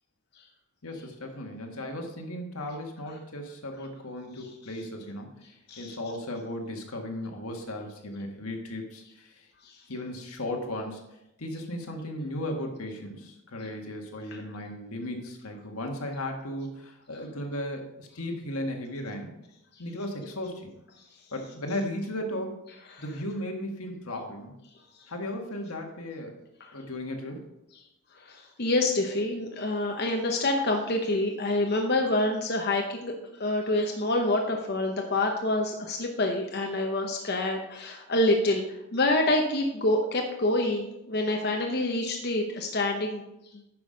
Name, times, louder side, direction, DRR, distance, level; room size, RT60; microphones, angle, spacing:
voice 1, 0.8-5.3 5.8-9.5 9.9-19.3 19.8-20.7 21.3-22.6 23.0-24.5 25.1-26.4 26.7-27.4, left 1 dB, 85° left, 2 dB, 1.7 m, -36 dB
voice 2, 28.2-33.1 33.4-43.2 43.5-43.6, left 2 dB, 45° left, 2 dB, 0.9 m, -27 dB
9.6 x 6.1 x 5.1 m, 0.89 s
head